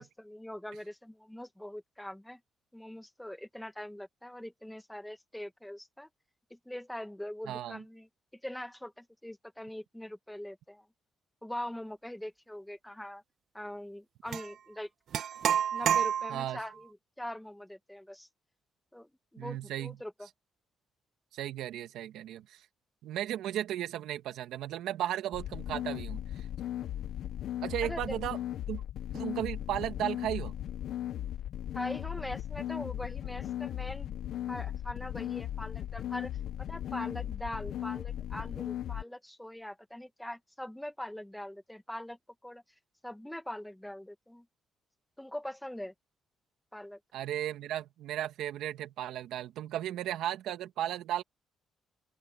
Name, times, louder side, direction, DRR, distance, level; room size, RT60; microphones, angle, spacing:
voice 1, 0.0-2.4 2.7-6.1 6.5-10.9 11.4-13.2 13.5-14.9 15.7-18.3 18.9-20.3 27.8-28.2 29.1-29.4 31.7-34.1 34.5-36.3 36.6-42.6 43.0-44.5 45.2-45.9 46.7-47.0, left 1 dB, 5° left, 1.7 m, -42 dB
voice 2, 7.5-7.8 16.3-16.6 19.4-19.9 21.3-22.6 23.0-26.5 27.6-28.4 28.7-28.8 29.1-30.5 47.1-51.2, right 12 dB, 85° right, 1.8 m, -35 dB
sound 1, 14.3-14.5 15.1-16.6, right 8 dB, 65° right, 1.3 m, -29 dB
sound 2, 25.3-39.0, left 11 dB, 75° left, 0.7 m, -37 dB
open air
cardioid pair, 90°, 0 cm